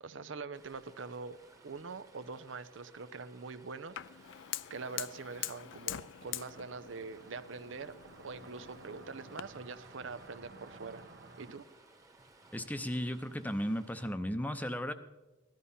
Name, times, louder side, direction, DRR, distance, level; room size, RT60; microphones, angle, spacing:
voice 1, 0.0-4.3 4.7-7.9 8.2-11.0 11.4-11.7, right 4 dB, 85° right, 13 dB, 0.7 m, -44 dB
Stream, 0.5-14.1, right 2 dB, 15° right, 1.2 m, -61 dB
Fire, 4.0-9.4, left 13 dB, 75° left, 0.4 m, -44 dB
sound 1, 6.3-11.5, right 2 dB, 65° right, 1.1 m, -54 dB
voice 2, 12.5-14.9, equal, 10° left, 10 dB, 0.6 m, -35 dB
17.0 x 12.0 x 5.6 m, 1.1 s
head